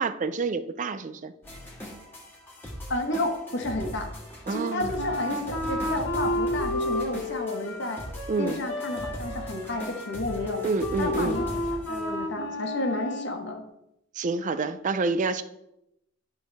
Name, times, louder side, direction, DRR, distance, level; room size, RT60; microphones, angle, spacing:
voice 1, 0.0-1.3 4.5-4.9 8.3-8.6 10.6-11.4 14.2-15.4, right 3 dB, 40° right, 12 dB, 0.4 m, -28 dB
sound 1, 1.4-12.4, equal, 10° left, 1.6 m, -40 dB
voice 2, 2.9-4.1 4.5-8.0 8.4-10.6 11.0-13.6, left 1 dB, 60° left, 3 dB, 1.2 m, -31 dB
Wind instrument woodwind instrument, 5.0-13.4, left 1 dB, 85° left, 1.2 m, -32 dB
11.0 x 4.6 x 3.4 m, 0.84 s
head